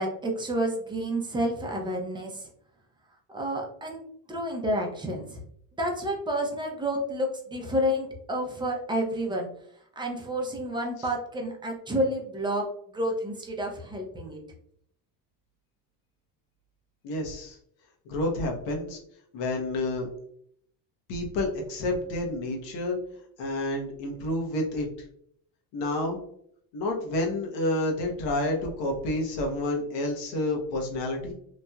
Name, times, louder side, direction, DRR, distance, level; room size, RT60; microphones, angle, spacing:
voice 1, 0.0-2.5 3.3-4.0 4.3-5.4 5.8-9.5 10.0-12.7 12.9-14.4, equal, 10° right, 0 dB, 0.6 m, -30 dB
voice 2, 17.0-17.6 18.0-19.0 19.3-20.1 21.1-23.0 23.4-24.9 25.7-26.2 26.7-31.3, left 1 dB, 70° left, 1 dB, 1.1 m, -29 dB
3.0 x 2.6 x 2.3 m, 0.67 s
supercardioid pair, 105°, 45 cm